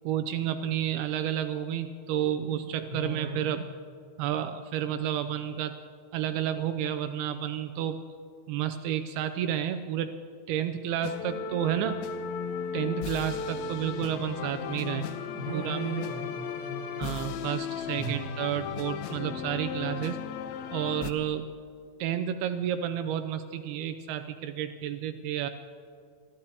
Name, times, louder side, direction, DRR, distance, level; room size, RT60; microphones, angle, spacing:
voice 1, 0.1-3.7 4.2-5.7 6.1-8.0 8.5-10.1 10.5-12.0 12.7-15.0 15.5-15.8 17.0-20.2 20.7-21.5 22.0-25.5, right 10 dB, 80° right, 9 dB, 2.5 m, -31 dB
voice 2, 2.9-3.5 15.3-16.8 17.9-18.2, right 3 dB, 15° right, -5 dB, 2.5 m, -36 dB
sound 1, 11.0-21.1, left 7 dB, 80° left, 2.4 m, -35 dB
29.0 x 14.0 x 2.8 m, 2.3 s
omnidirectional pair, 4.5 m